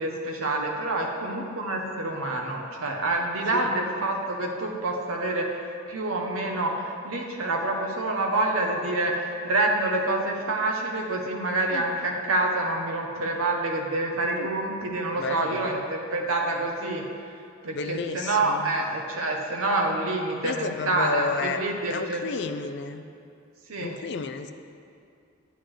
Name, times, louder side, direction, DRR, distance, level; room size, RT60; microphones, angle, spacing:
voice 1, 0.0-17.0 17.6-22.2 23.7-23.9, right 2 dB, 85° right, 1 dB, 0.8 m, -27 dB
voice 2, 15.2-15.7 17.7-18.7 20.4-21.6 21.9-23.1 23.8-24.5, left 4 dB, 55° left, 8 dB, 0.4 m, -32 dB
8.1 x 8.0 x 3.2 m, 2.5 s
head